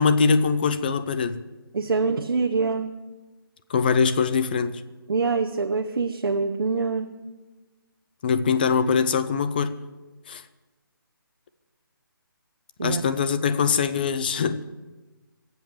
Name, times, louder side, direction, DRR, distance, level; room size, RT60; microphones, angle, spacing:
voice 1, 0.0-1.4 3.7-4.8 8.2-9.7 10.3-10.4 12.8-14.6, left 5 dB, 25° left, 0.5 m, -22 dB
voice 2, 1.7-2.9 5.1-7.1 12.8-13.0, right 4 dB, 75° right, 1.0 m, -25 dB
20.5 x 8.0 x 7.3 m
hypercardioid pair, 165°, 12 cm